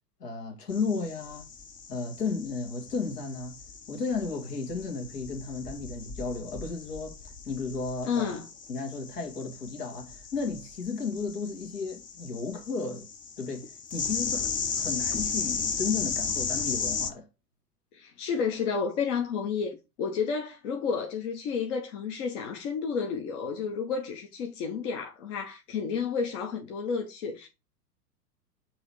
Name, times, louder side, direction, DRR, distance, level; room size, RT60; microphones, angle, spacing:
voice 1, 0.2-1.5 1.9-3.6 3.9-8.3 8.7-13.1 13.4-17.3, left 4 dB, 70° left, 2.2 m, -34 dB
sound 1, 0.7-17.1, left 6 dB, 15° left, 0.6 m, -36 dB
voice 2, 8.1-8.5 17.9-27.5, left 6 dB, 50° left, 1.3 m, -31 dB
7.7 x 3.0 x 4.8 m
figure-of-eight pair, 100°, 49 cm